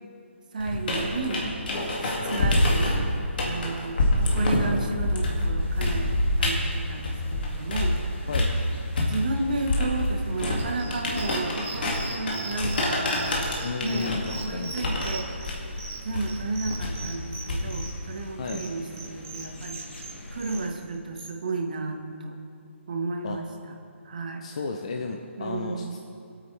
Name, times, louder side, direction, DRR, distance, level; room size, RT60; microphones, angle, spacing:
voice 1, 0.5-1.4 2.0-3.0 3.4-8.4 9.1-13.5 13.8-15.5 16.0-19.8 20.3-22.4 22.9-23.8 24.0-24.4 25.4-26.0, right 3 dB, 40° right, 4 dB, 1.0 m, -32 dB
sound 1, 0.6-8.0 8.3-17.9, left 1 dB, 45° left, 2.1 m, -27 dB
sound 2, 5.6-20.7, left 1 dB, 65° left, 2.9 m, -45 dB
sound 3, 10.6-21.3, right 3 dB, 85° right, 2.5 m, -40 dB
voice 2, 13.6-14.7 18.4-18.6 23.2-23.4 24.4-26.0, left 4 dB, 30° left, 3 dB, 0.5 m, -33 dB
22.5 x 8.9 x 3.3 m, 2.4 s
hypercardioid pair, 180°, 7 cm